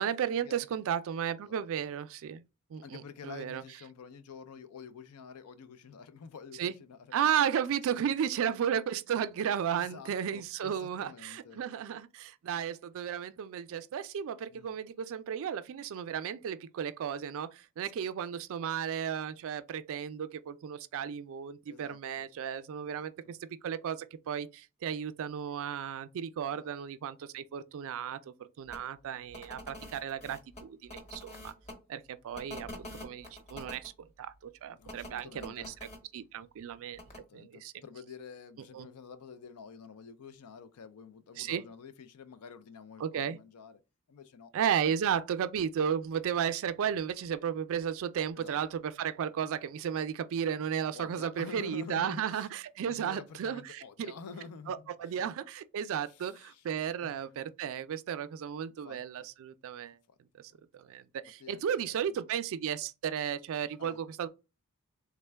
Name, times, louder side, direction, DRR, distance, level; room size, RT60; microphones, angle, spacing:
voice 1, 0.0-2.4 2.7-3.6 6.6-6.7 7.1-23.4 23.6-28.2 28.6-31.5 31.9-35.7 36.1-37.0 37.3-37.7 38.7-38.9 41.4-41.6 43.0-43.4 44.5-53.8 54.7-60.0 60.4-64.3, right 8 dB, 65° right, 0.3 m, -34 dB
voice 2, 2.8-7.1 9.7-11.6 14.5-14.8 17.9-18.1 21.7-22.3 22.8-23.3 26.5-26.7 34.7-35.8 37.2-43.8 44.1-44.5 44.8-45.0 48.4-48.6 50.9-52.5 52.8-55.2 56.0-57.2 58.8-59.3 60.1-60.2 61.4-62.2 63.8-64.0, left 6 dB, 90° left, 0.4 m, -49 dB
sound 1, 28.7-28.8 29.3-31.7 32.3-33.9 34.9-36.0 37.0-37.2, left 1 dB, 30° left, 1.1 m, -46 dB
3.4 x 2.2 x 3.3 m
head